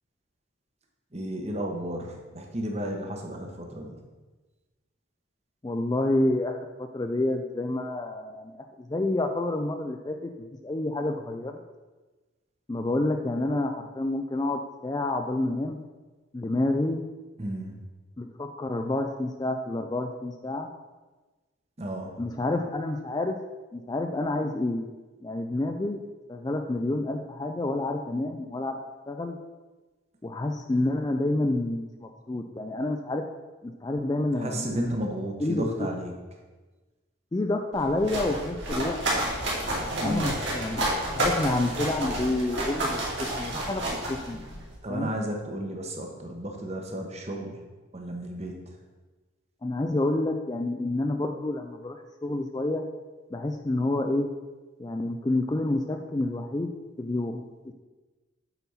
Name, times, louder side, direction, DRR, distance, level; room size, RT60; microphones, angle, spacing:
voice 1, 1.1-4.0 17.4-17.8 21.8-22.1 34.4-36.1 40.0-40.3 44.8-47.6 47.9-48.6, right 1 dB, 30° right, 2 dB, 1.0 m, -33 dB
voice 2, 5.6-11.6 12.7-15.8 16.3-17.0 18.2-20.7 22.2-23.4 23.7-24.9 25.2-26.0 26.3-28.8 29.1-29.4 30.2-33.2 33.6-34.7 35.4-35.9 37.3-39.0 40.0-40.8 41.1-43.8 44.1-44.5 44.9-45.1 49.6-52.9 53.3-54.3 54.8-56.7 57.0-57.7, left 2 dB, 20° left, 5 dB, 0.3 m, -29 dB
sound 1, 37.7-44.7, right 1 dB, 60° right, 2.4 m, -30 dB
8.1 x 4.3 x 5.5 m, 1.2 s
head